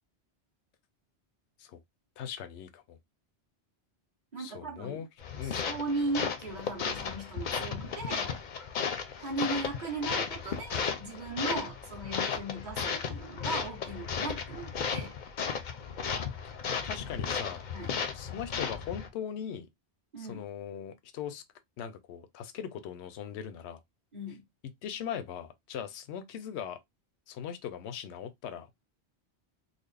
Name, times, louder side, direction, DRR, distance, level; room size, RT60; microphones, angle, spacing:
voice 1, 2.2-3.0 4.4-5.1 5.4-5.6 16.0-16.2 16.8-17.6 18.1-19.7 20.2-21.4 21.8-23.8 24.8-26.8 27.3-28.7, left 8 dB, 80° left, 0.9 m, -40 dB
voice 2, 4.3-5.0 5.4-8.4 9.2-15.2 17.7-17.9 20.1-20.5 24.1-24.5, right 2 dB, 40° right, 1.5 m, -37 dB
sound 1, 5.2-19.1, left 6 dB, 50° left, 0.6 m, -35 dB
3.9 x 2.0 x 3.2 m
omnidirectional pair, 1.1 m